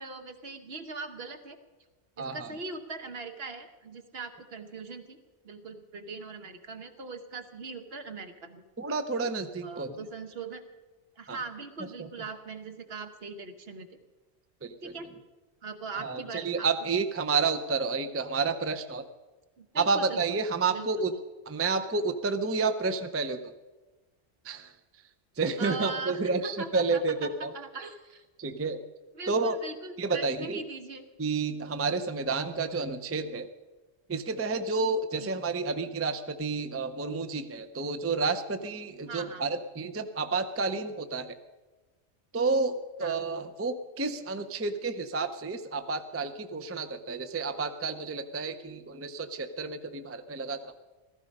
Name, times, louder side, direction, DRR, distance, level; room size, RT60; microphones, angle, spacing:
voice 1, 0.0-1.6 2.2-5.2 5.4-8.6 9.6-10.6 11.2-14.0 14.8-15.1 15.6-16.9 19.6-20.2 20.7-21.2 25.6-28.2 29.1-31.1 35.1-35.3 39.1-39.5 43.0-43.2, right 3 dB, 60° right, 7 dB, 1.3 m, -40 dB
voice 2, 2.2-2.5 8.8-9.9 11.3-11.4 14.6-14.9 16.0-19.1 19.7-21.1 21.5-23.5 24.4-24.7 25.4-27.5 28.4-28.8 29.3-29.6 30.0-30.6 31.2-33.5 34.1-41.3 42.3-50.7, right 4 dB, 20° right, 9 dB, 0.4 m, -30 dB
15.5 x 14.5 x 5.3 m, 1.2 s
omnidirectional pair, 1.2 m